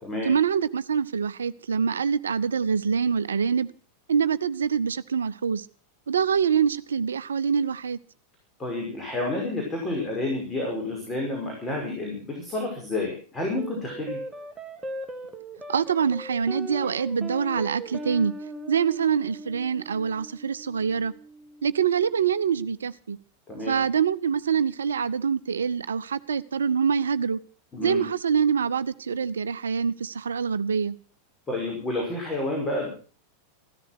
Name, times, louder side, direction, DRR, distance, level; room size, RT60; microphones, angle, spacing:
voice 1, 0.2-3.7 4.1-5.6 6.1-8.0 15.7-18.3 18.7-21.1 21.6-23.2 23.7-27.4 27.8-31.0, right 6 dB, 70° right, 0.7 m, -25 dB
voice 2, 8.6-14.2 23.5-23.8 27.7-28.0 31.5-32.9, left 2 dB, 15° left, 5.7 m, -30 dB
sound 1, 13.6-22.2, right 1 dB, 15° right, 2.1 m, -39 dB
15.5 x 13.5 x 6.1 m
figure-of-eight pair, 90°, 0 cm